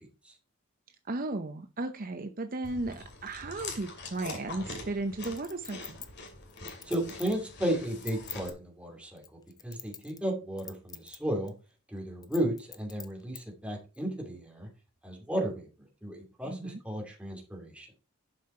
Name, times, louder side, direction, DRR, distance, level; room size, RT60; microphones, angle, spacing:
voice 1, 1.0-6.0 16.4-16.8, right 2 dB, 45° right, 8 dB, 0.7 m, -35 dB
Chewing mastication, 2.6-8.5, left 3 dB, 55° left, 2.5 m, -44 dB
Chink clink, 5.2-7.4 7.9-8.5 9.2-10.3 10.6-11.2 11.5-11.6 12.2-13.4 13.9-14.0, left 7 dB, 20° left, 0.7 m, -44 dB
voice 2, 6.9-9.2 9.6-11.5 11.9-14.7 15.0-15.7 16.0-17.9, right 1 dB, 5° right, 1 dB, 2.6 m, -34 dB
11.5 x 5.7 x 4.3 m, 0.32 s
head